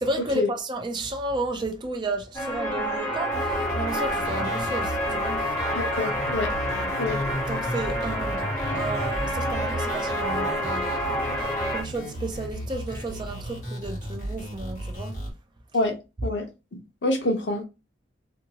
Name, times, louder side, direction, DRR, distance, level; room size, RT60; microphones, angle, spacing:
voice 1, 0.0-5.5 6.7-6.9 7.5-15.2, right 2 dB, 25° right, 0.4 m, -32 dB
sound 1, 2.3-11.8, equal, 20° left, 0.9 m, -28 dB
sound 2, 3.3-15.3, equal, 40° left, 1.4 m, -35 dB
voice 2, 5.7-6.5 7.0-7.2 15.7-16.0 16.2-16.4 17.0-17.6, left 2 dB, 85° left, 0.8 m, -26 dB
2.7 x 2.7 x 2.8 m
head